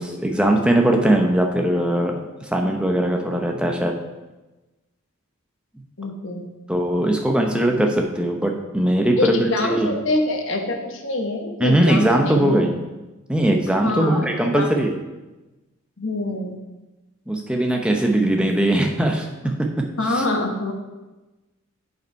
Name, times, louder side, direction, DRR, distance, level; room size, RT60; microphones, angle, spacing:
voice 1, 0.0-2.1 2.4-4.0 6.7-10.0 11.6-12.8 13.3-15.0 17.3-19.7 20.1-20.2, right 1 dB, 5° right, 2 dB, 0.6 m, -20 dB
voice 2, 6.0-6.5 9.2-12.6 13.8-14.2 14.5-14.7 16.0-16.5 20.0-20.7, left 2 dB, 60° left, 3 dB, 1.1 m, -25 dB
7.9 x 5.4 x 4.5 m, 1.1 s
head